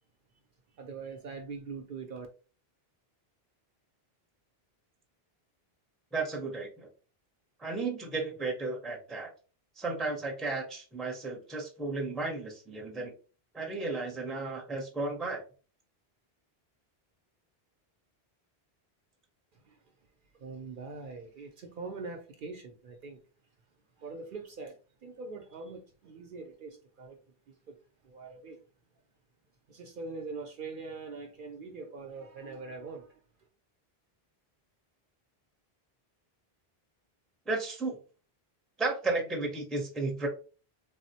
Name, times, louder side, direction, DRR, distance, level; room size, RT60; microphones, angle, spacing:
voice 1, 0.7-2.3 19.5-19.8 20.3-23.2 24.0-27.2 27.5-27.8 28.0-28.6 29.7-33.2, right 4 dB, 60° right, 0.6 m, -43 dB
voice 2, 6.1-6.9 7.6-9.3 9.8-13.1 13.5-15.4 37.5-37.9 38.8-40.3, right 3 dB, ahead, 0.5 m, -34 dB
3.5 x 2.0 x 2.7 m
omnidirectional pair, 1.0 m